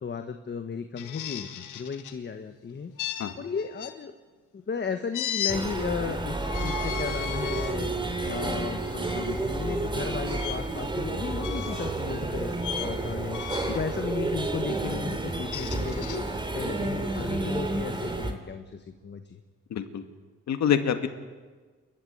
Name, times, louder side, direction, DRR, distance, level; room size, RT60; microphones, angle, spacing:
voice 1, 0.0-2.9 3.4-4.1 4.5-7.9 8.2-16.3 16.5-19.4, left 5 dB, 35° left, 7 dB, 1.4 m, -35 dB
sound 1, 1.0-2.2 3.0-3.9 5.1-5.6 6.4-7.8 8.4-8.6 10.4-10.6 11.4-12.0 12.6-12.9 13.3-13.8 15.3-16.2, left 10 dB, 80° left, 1.9 m, -35 dB
sound 2, 5.5-18.3, right 2 dB, 15° right, 2.8 m, -30 dB
voice 2, 19.7-20.0 20.5-21.1, left 8 dB, 65° left, 7 dB, 2.2 m, -26 dB
28.5 x 12.5 x 9.5 m, 1.4 s
cardioid pair, 90°, 30 cm